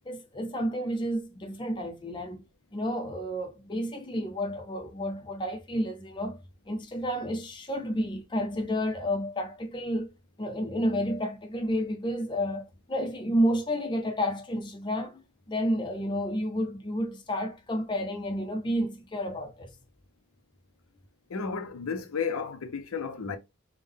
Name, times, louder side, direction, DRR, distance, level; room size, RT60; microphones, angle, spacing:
voice 1, 0.1-2.4 2.7-6.4 6.7-10.1 10.4-19.7, equal, 20° left, 0.5 m, -30 dB
voice 2, 21.3-23.4, left 5 dB, 85° left, 0.6 m, -33 dB
3.5 x 2.1 x 3.5 m
head